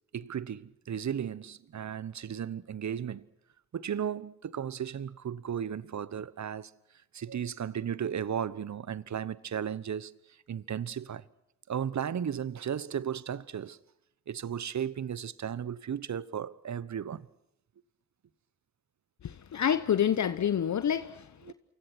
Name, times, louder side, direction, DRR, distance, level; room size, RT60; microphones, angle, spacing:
voice 1, 0.1-3.2 3.7-6.7 7.1-11.2 11.7-13.8 14.3-17.3 21.4-21.5, right 8 dB, 50° right, 1.1 m, -35 dB
voice 2, 19.2-21.5, left 9 dB, 55° left, 1.0 m, -28 dB
29.0 x 24.5 x 6.2 m
hypercardioid pair, 45°, 35 cm